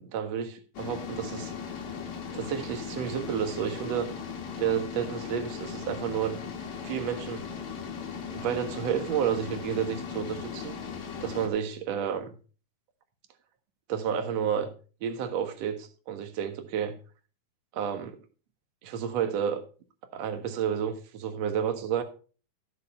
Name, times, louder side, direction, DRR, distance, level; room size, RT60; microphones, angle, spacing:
voice 1, 0.0-1.5 2.3-4.1 4.6-6.4 6.8-7.5 8.3-10.8 11.2-12.3 13.9-14.7 15.0-17.0 17.7-18.2 18.8-19.6 20.1-22.0, right 8 dB, 55° right, 2.0 m, -30 dB
sound 1, 0.7-11.5, left 6 dB, 55° left, 2.6 m, -38 dB
15.0 x 6.8 x 4.3 m
omnidirectional pair, 4.6 m